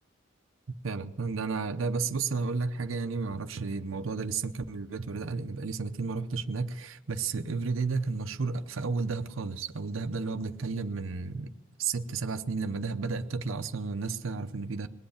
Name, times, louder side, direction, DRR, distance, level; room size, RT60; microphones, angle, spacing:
voice 1, 0.8-11.5 11.8-14.9, right 4 dB, 80° right, 0.7 m, -32 dB
20.5 x 7.9 x 8.5 m
head